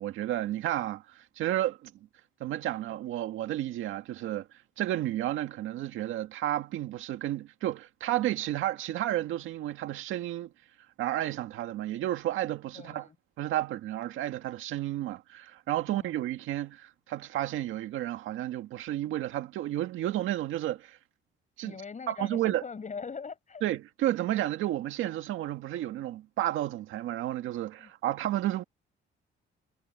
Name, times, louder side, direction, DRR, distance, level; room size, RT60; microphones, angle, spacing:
voice 1, 0.0-1.9 2.4-4.5 4.8-10.5 11.0-13.1 13.4-21.0 21.6-21.7 22.1-22.6 23.6-28.6, right 13 dB, 90° right, 1.9 m, -32 dB
voice 2, 12.7-13.1 15.9-16.2 21.6-23.6 27.8-27.9, left 5 dB, 40° left, 6.9 m, -41 dB
cardioid pair, 90°, 20 cm